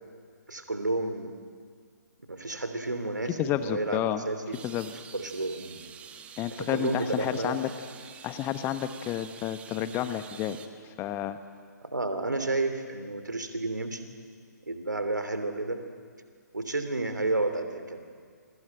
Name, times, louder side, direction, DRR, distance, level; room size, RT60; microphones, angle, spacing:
voice 1, 0.5-1.3 2.3-4.6 5.1-5.8 6.6-7.6 11.8-14.1 14.6-15.8 16.5-18.0, right 2 dB, 80° right, 8 dB, 3.0 m, -31 dB
voice 2, 3.4-4.2 4.6-4.9 6.4-7.7 8.2-10.6 11.0-11.4, left 11 dB, 20° left, 10 dB, 1.2 m, -30 dB
sound 1, 4.5-10.7, right 7 dB, 15° right, 1.2 m, -48 dB
27.5 x 23.0 x 9.0 m, 2.1 s
figure-of-eight pair, 130°, 10 cm